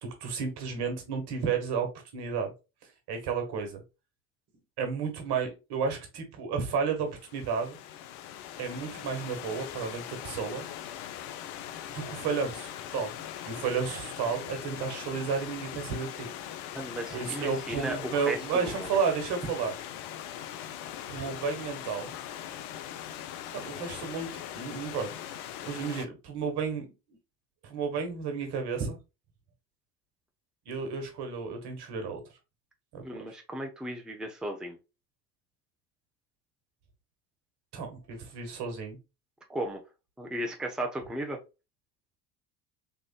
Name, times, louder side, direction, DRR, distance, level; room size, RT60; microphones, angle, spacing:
voice 1, 0.0-1.9 2.1-2.5 3.1-3.8 4.8-7.8 8.6-10.6 11.9-13.1 13.4-16.3 17.1-19.7 21.1-22.1 23.5-25.4 25.6-26.9 27.6-29.0 30.7-32.2 32.9-33.0 37.7-39.0, right 5 dB, 55° right, 1.5 m, -32 dB
Stream / Liquid, 7.1-26.1, left 11 dB, 70° left, 0.6 m, -41 dB
voice 2, 16.7-18.4 18.6-18.9 33.0-34.8 39.5-39.8 40.2-41.4, right 1 dB, ahead, 0.9 m, -35 dB
3.7 x 3.5 x 2.2 m
hypercardioid pair, 65°, 47 cm